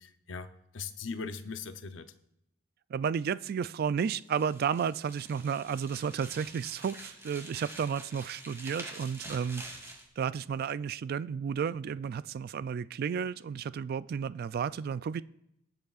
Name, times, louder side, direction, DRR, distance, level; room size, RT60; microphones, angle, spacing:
voice 1, 0.0-2.1, left 4 dB, 75° left, 9 dB, 0.7 m, -40 dB
voice 2, 2.9-9.6 10.2-15.2, right 7 dB, 50° right, 17 dB, 0.3 m, -32 dB
sound 1, 4.2-10.1, right 1 dB, 15° right, 2.0 m, -47 dB
19.0 x 8.0 x 2.4 m, 0.80 s
head